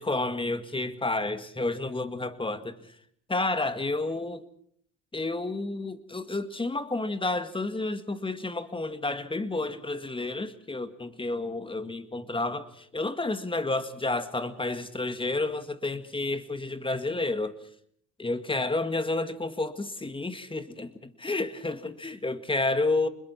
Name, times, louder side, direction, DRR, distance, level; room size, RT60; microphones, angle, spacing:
voice 1, 0.0-3.0 3.3-4.5 5.1-17.6 18.2-23.1, left 2 dB, 15° left, 11 dB, 1.9 m, -30 dB
27.0 x 21.0 x 5.9 m, 0.63 s
cardioid pair, 90°, 30 cm